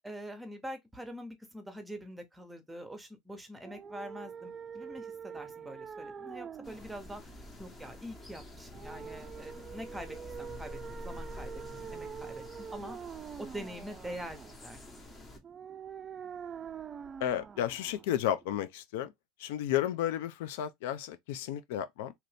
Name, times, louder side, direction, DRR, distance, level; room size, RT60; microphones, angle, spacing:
voice 1, 0.0-11.5 11.8-13.0 13.4-14.8, equal, 5° right, 0.9 m, -45 dB
sound 1, 3.6-18.6, right 7 dB, 30° right, 0.4 m, -45 dB
sound 2, 6.6-15.4, left 1 dB, 25° left, 1.1 m, -48 dB
voice 2, 17.2-19.1 19.4-22.1, left 11 dB, 75° left, 0.4 m, -32 dB
2.9 x 2.6 x 3.3 m
supercardioid pair, 105°, 0 cm